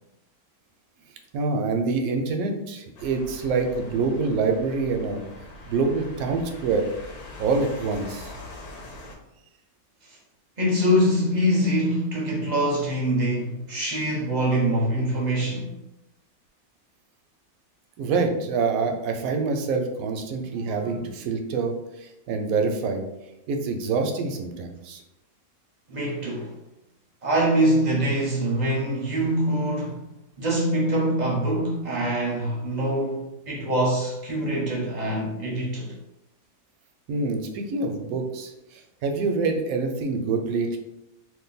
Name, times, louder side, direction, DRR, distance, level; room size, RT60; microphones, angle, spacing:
voice 1, 1.3-5.2 5.7-6.9 7.4-8.3 18.0-23.0 23.5-25.0 37.1-40.8, right 4 dB, 75° right, 1.0 m, -26 dB
sound 1, 2.9-9.1, left 1 dB, 90° left, 1.2 m, -42 dB
voice 2, 10.6-15.7 20.4-21.0 25.9-26.5 27.2-30.0 30.4-35.9, right 1 dB, 45° right, 0.6 m, -24 dB
2.7 x 2.4 x 3.8 m
omnidirectional pair, 1.6 m